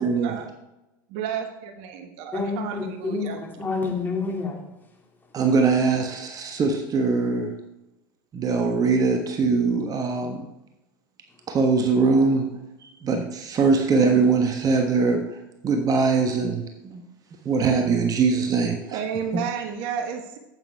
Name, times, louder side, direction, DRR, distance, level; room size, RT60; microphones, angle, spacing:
voice 1, 0.0-0.4 5.3-7.5 8.3-10.4 11.5-12.5 12.8-17.0 17.4-19.0 19.3-19.4, right 4 dB, 35° right, 4 dB, 1.3 m, -22 dB
voice 2, 1.1-3.4 18.9-20.4, right 7 dB, 55° right, 5 dB, 1.1 m, -31 dB
voice 3, 2.3-4.6, left 3 dB, 15° left, 0 dB, 2.6 m, -28 dB
8.8 x 8.2 x 3.5 m, 0.96 s
hypercardioid pair, 80°, 11 cm